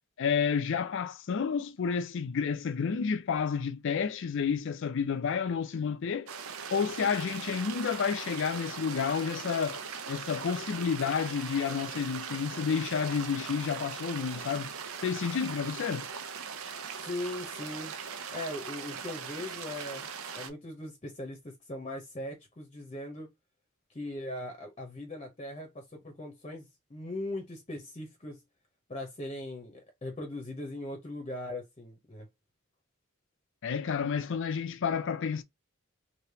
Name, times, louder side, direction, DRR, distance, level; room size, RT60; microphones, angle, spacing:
voice 1, 0.2-6.3 6.7-9.8 10.1-14.7 15.0-16.1 33.6-35.4, left 6 dB, 60° left, 0.4 m, -30 dB
sound 1, 6.3-20.5, right 6 dB, 80° right, 0.6 m, -40 dB
voice 2, 17.0-18.0 18.3-20.1 20.3-23.3 23.9-28.4 28.9-32.3, left 1 dB, 30° left, 0.8 m, -39 dB
3.3 x 2.8 x 2.8 m
head